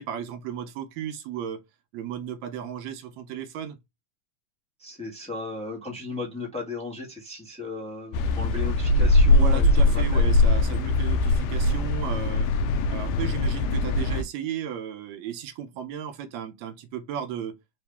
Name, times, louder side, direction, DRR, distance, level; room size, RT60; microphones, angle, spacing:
voice 1, 0.0-1.6 1.9-3.8 9.3-12.5 12.9-17.6, right 8 dB, 75° right, 1.8 m, -35 dB
voice 2, 4.8-10.3, left 3 dB, 5° left, 0.8 m, -36 dB
sound 1, 8.1-14.2, left 2 dB, 80° left, 1.6 m, -21 dB
4.8 x 2.7 x 3.4 m
omnidirectional pair, 3.5 m